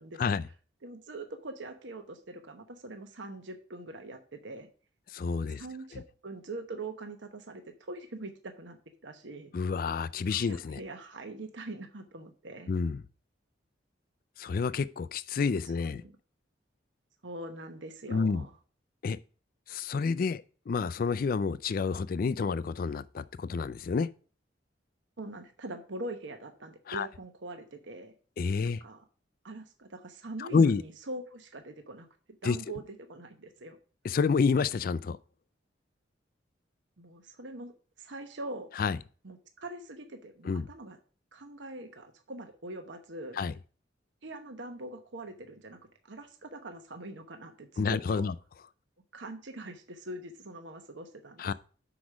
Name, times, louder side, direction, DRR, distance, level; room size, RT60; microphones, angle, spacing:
voice 1, 0.0-0.4 0.8-4.7 5.6-8.8 9.0-9.5 10.3-12.7 15.8-16.1 17.2-18.5 25.2-28.1 28.6-29.0 29.4-32.1 32.4-32.8 33.1-33.8 37.0-37.7 38.0-38.7 39.2-41.0 41.3-43.4 44.2-45.8 46.1-48.3 49.1-51.5, right 2 dB, 80° right, 1.0 m, -43 dB
voice 2, 5.1-5.6 5.9-6.0 9.5-10.8 12.7-13.0 14.4-16.0 18.1-18.4 19.0-19.2 19.7-24.1 26.9-27.1 28.4-28.8 30.4-30.8 32.4-32.6 34.0-35.2 38.8-39.0 40.4-40.7 43.4-43.5 47.8-48.3 51.4-51.5, left 5 dB, 50° left, 0.3 m, -29 dB
6.1 x 4.9 x 6.1 m
head